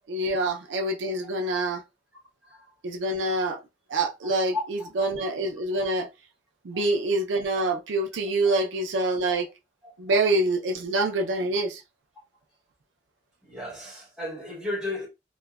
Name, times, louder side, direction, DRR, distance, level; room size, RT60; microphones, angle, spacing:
voice 1, 0.1-1.8 2.8-3.6 3.9-6.1 6.6-9.5 10.0-11.8, right 2 dB, 80° right, 0.5 m, -26 dB
voice 2, 4.2-4.9 5.2-5.4 6.7-6.9 8.4-8.5 9.8-10.2 13.4-15.1, left 2 dB, 5° right, 0.9 m, -35 dB
2.9 x 2.1 x 2.3 m
head